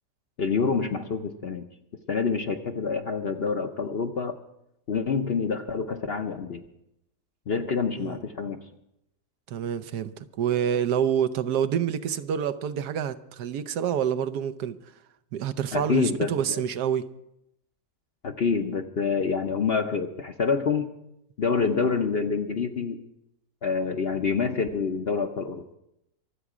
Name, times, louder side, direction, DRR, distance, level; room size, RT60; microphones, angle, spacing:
voice 1, 0.4-1.6 2.1-4.4 4.9-6.6 7.5-8.6 15.7-16.6 18.2-20.9 21.4-23.0 23.6-25.6, left 5 dB, 50° left, 0.8 m, -27 dB
voice 2, 9.5-14.8 15.3-17.1, right 8 dB, 75° right, 1.3 m, -27 dB
24.0 x 8.3 x 4.9 m
omnidirectional pair, 1.8 m